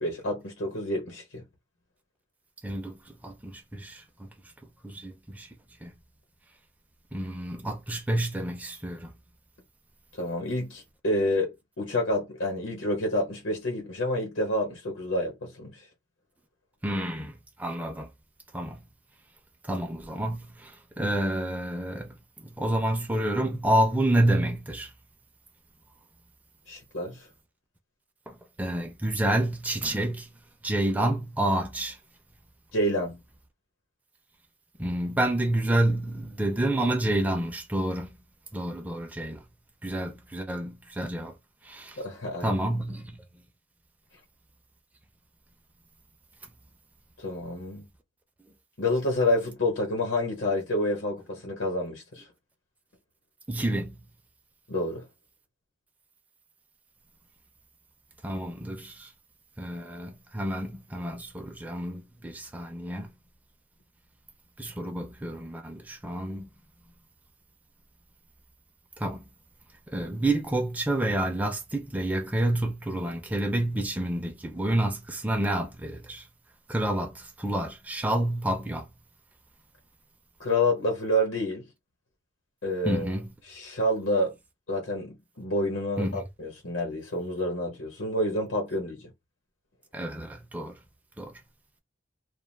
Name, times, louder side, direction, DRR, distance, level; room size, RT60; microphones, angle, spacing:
voice 1, 0.0-1.4 10.2-15.8 26.7-27.3 32.7-33.2 42.0-42.6 47.2-47.9 48.8-52.2 54.7-55.0 80.4-81.7 82.6-83.1 83.5-84.3 84.7-89.1, left 1 dB, 85° left, 1.0 m, -28 dB
voice 2, 2.6-4.3 4.8-5.5 5.8-5.9 7.1-9.1 16.8-18.1 18.5-18.8 19.6-22.2 22.6-24.9 28.3-30.3 30.6-32.0 34.8-38.2 38.5-39.4 39.8-41.3 41.6-42.0 42.4-43.2 53.5-54.0 58.2-59.1 59.6-63.1 64.6-66.5 69.0-69.2 69.9-76.3 76.7-78.9 82.9-83.3 86.0-86.2 89.9-90.8 91.2-91.3, right 1 dB, 10° right, 0.4 m, -29 dB
2.3 x 2.3 x 3.2 m
head